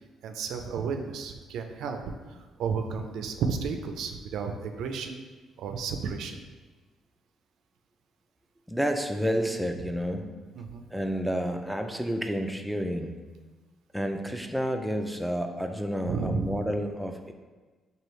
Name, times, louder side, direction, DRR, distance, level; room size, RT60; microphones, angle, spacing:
voice 1, 0.2-2.0 2.6-5.2 5.6-6.4 10.6-10.8 16.1-16.6, right 5 dB, 80° right, 5 dB, 0.3 m, -32 dB
voice 2, 8.7-10.3 10.9-13.2 13.9-17.3, equal, ahead, 4 dB, 0.3 m, -30 dB
4.5 x 2.7 x 3.1 m, 1.3 s
cardioid pair, 90°, 0 cm